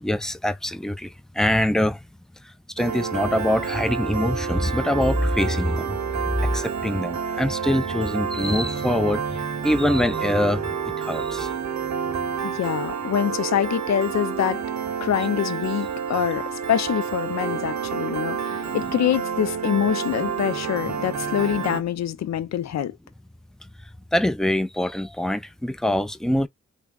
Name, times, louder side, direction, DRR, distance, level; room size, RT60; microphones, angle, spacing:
voice 1, 0.0-2.0 2.8-6.0 6.4-9.2 9.6-11.5 24.1-26.5, left 1 dB, ahead, 0.4 m, -24 dB
Piano, 2.8-21.8, right 6 dB, 65° right, 0.7 m, -29 dB
voice 2, 12.4-14.6 15.0-23.0, left 10 dB, 65° left, 0.5 m, -25 dB
3.3 x 2.1 x 2.3 m
cardioid pair, 45°, 30 cm